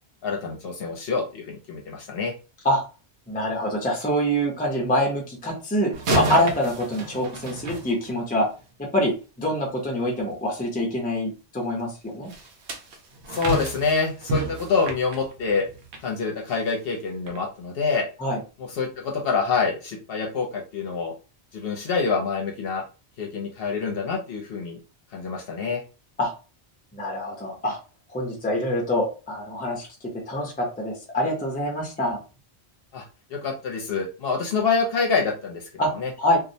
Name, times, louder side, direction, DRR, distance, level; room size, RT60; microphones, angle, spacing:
voice 1, 0.2-2.3 13.3-15.7 16.0-18.1 18.6-21.1 21.5-22.8 23.2-24.8 25.1-25.8 32.9-33.0 33.3-36.1, left 4 dB, 65° left, 0 dB, 0.8 m, -26 dB
voice 2, 3.3-8.5 8.8-12.3 18.2-18.4 26.2-26.3 26.9-27.8 28.1-29.9 30.3-32.2 35.8-35.9 36.2-36.4, equal, 10° left, -1 dB, 0.5 m, -25 dB
sound 1, 5.9-8.5 12.3-16.1 16.5-16.7 17.3-17.4, right 1 dB, 80° right, 0.9 m, -30 dB
2.4 x 2.0 x 2.6 m, 0.33 s
omnidirectional pair, 1.1 m